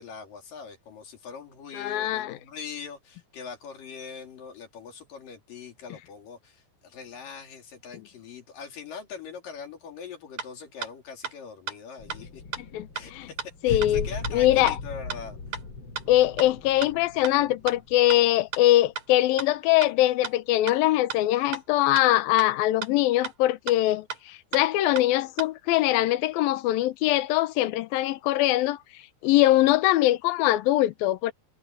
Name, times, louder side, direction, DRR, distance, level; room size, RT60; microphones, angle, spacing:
voice 1, 0.0-12.4 12.9-15.4, left 6 dB, 60° left, 4.6 m, -42 dB
voice 2, 1.7-2.4 12.6-13.3 13.6-14.1 14.3-14.8 16.1-28.8 29.2-31.3, left 15 dB, 75° left, 2.6 m, -22 dB
sound 1, 10.4-10.5 10.8-10.9 11.2-11.3 11.7-11.8 12.1-12.2 12.5-12.6 13.0-13.1 13.4-13.5 13.8-13.9 14.2-14.3 14.7-14.8 15.1-15.2 15.5-15.6 16.0-16.1 16.4-16.5 16.8-16.9 17.2-17.3 17.7-17.8 18.1-18.2 18.5-18.6 19.0-19.1 19.4-19.5 19.8-19.9 20.2-20.3 20.7-20.8 21.1-21.2 21.5-21.6 22.0-22.1 22.4-22.5 22.8-22.9 23.2-23.3 23.7-23.8 24.1-24.2 24.5-24.6 25.0-25.1 25.4-25.5, right 7 dB, 50° right, 4.7 m, -33 dB
sound 2, 12.0-18.8, left 4 dB, 35° left, 3.2 m, -38 dB
omnidirectional pair, 4.6 m